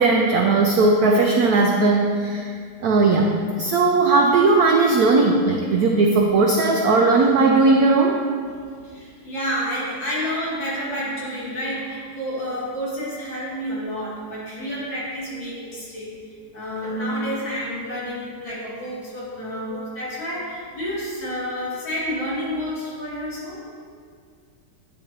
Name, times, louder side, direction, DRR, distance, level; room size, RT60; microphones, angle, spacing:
voice 1, 0.0-2.5 2.8-8.2, right 3 dB, 75° right, 1 dB, 0.8 m, -17 dB
voice 2, 8.8-16.2 16.5-23.6, equal, 50° left, -8 dB, 2.4 m, -29 dB
9.8 x 3.4 x 4.3 m, 2.1 s
omnidirectional pair, 2.1 m